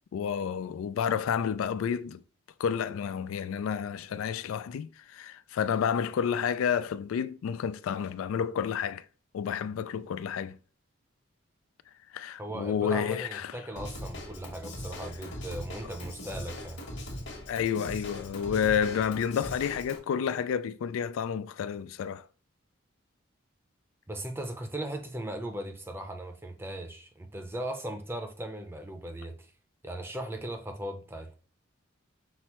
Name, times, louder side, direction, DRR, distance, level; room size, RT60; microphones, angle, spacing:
voice 1, 0.1-2.2 2.6-9.0 9.3-10.6 12.1-13.6 15.8-15.9 17.5-22.2, left 7 dB, 85° left, 0.3 m, -30 dB
voice 2, 12.4-16.8 24.1-29.5 29.8-31.3, right 1 dB, 10° right, 0.6 m, -38 dB
Drum kit / Drum, 13.8-20.0, left 1 dB, 60° left, 1.2 m, -40 dB
6.0 x 2.0 x 4.2 m
head